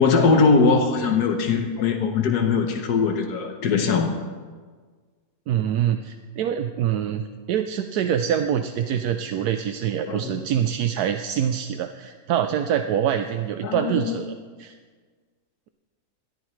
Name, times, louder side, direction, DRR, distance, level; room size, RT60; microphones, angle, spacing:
voice 1, 0.0-4.1 10.0-10.4 13.6-14.2, left 4 dB, 90° left, 4 dB, 1.6 m, -21 dB
voice 2, 5.5-7.2 7.5-14.3 14.6-14.8, right 9 dB, 80° right, 8 dB, 1.1 m, -25 dB
20.5 x 13.5 x 3.2 m, 1.5 s
omnidirectional pair, 1.7 m